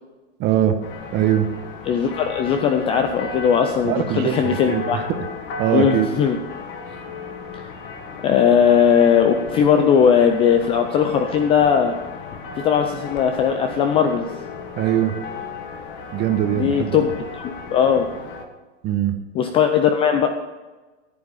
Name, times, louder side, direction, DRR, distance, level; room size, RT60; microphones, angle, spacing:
voice 1, 0.4-0.8 1.1-1.5 3.8-5.0 5.6-6.1 14.8-15.1 16.1-17.0 18.8-19.1, right 11 dB, 30° right, 8 dB, 1.1 m, -21 dB
sound 1, 0.8-18.4, left 4 dB, 30° left, 1.6 m, -35 dB
voice 2, 1.9-5.0 5.7-6.4 7.5-7.7 8.2-12.0 12.6-14.3 16.5-18.1 19.3-20.3, left 7 dB, 15° left, 6 dB, 0.4 m, -18 dB
13.5 x 7.8 x 5.4 m, 1.2 s
hypercardioid pair, 140°, 37 cm